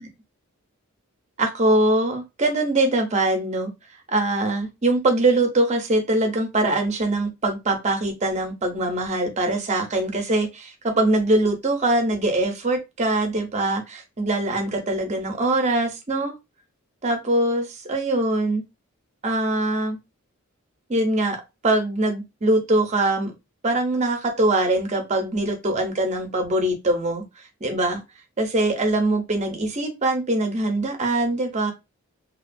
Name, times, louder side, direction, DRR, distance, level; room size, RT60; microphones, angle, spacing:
voice 1, 1.4-3.7 4.1-16.3 17.0-18.6 19.2-20.0 20.9-21.4 21.6-23.3 23.6-27.2 27.6-28.0 28.4-31.7, right 2 dB, 30° right, 0.6 m, -22 dB
2.8 x 2.3 x 2.5 m
head